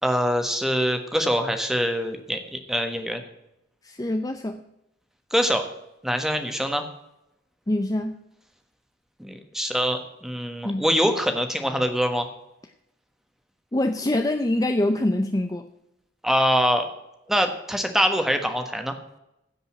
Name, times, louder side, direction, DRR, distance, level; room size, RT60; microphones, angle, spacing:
voice 1, 0.0-3.2 5.3-5.6 6.0-6.9 9.2-12.3 16.2-16.9 17.3-18.9, equal, ahead, 6 dB, 1.3 m, -24 dB
voice 2, 3.8-4.6 7.7-8.2 10.6-10.9 13.7-15.7, left 1 dB, 20° left, 7 dB, 0.6 m, -25 dB
16.0 x 5.4 x 7.4 m, 0.87 s
head